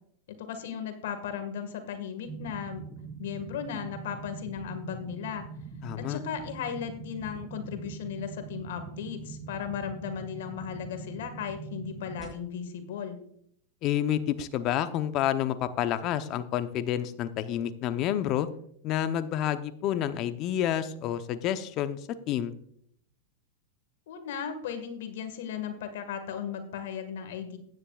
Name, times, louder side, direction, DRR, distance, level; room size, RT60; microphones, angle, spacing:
voice 1, 0.3-2.9 3.2-5.5 6.0-13.2 24.1-27.6, left 8 dB, 75° left, 8 dB, 1.8 m, -36 dB
sound 1, 2.3-12.3, right 4 dB, 25° right, 5.1 m, -43 dB
voice 2, 5.8-6.2 13.8-18.5 18.8-22.0 22.3-22.5, left 11 dB, 45° left, 11 dB, 0.8 m, -29 dB
15.5 x 10.0 x 2.4 m, 0.68 s
hypercardioid pair, 110°, 0 cm